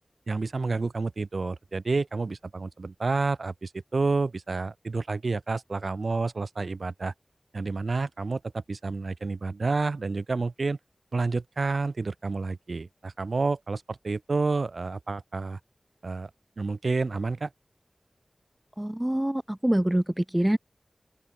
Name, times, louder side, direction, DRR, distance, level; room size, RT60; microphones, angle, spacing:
voice 1, 0.3-7.1 7.5-10.8 11.1-15.6 16.0-16.3 16.6-17.5, right 3 dB, 85° right, 2.0 m, -29 dB
voice 2, 18.8-20.6, right 1 dB, 15° right, 0.8 m, -25 dB
open air
wide cardioid pair, 45°, 0 cm